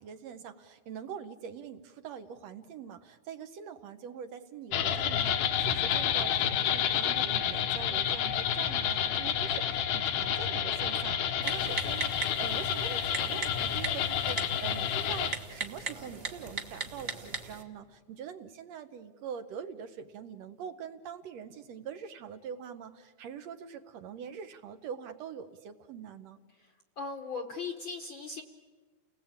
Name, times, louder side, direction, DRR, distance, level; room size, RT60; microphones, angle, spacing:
voice 1, 0.0-26.4, right 7 dB, 70° right, 8 dB, 1.9 m, -43 dB
sound 1, 4.7-15.3, left 9 dB, 85° left, 2.7 m, -29 dB
Typing, 11.4-17.6, right 3 dB, 35° right, 0.9 m, -39 dB
voice 2, 26.6-28.4, left 4 dB, 60° left, 6 dB, 1.4 m, -39 dB
29.5 x 19.0 x 8.7 m, 1.4 s
omnidirectional pair, 3.5 m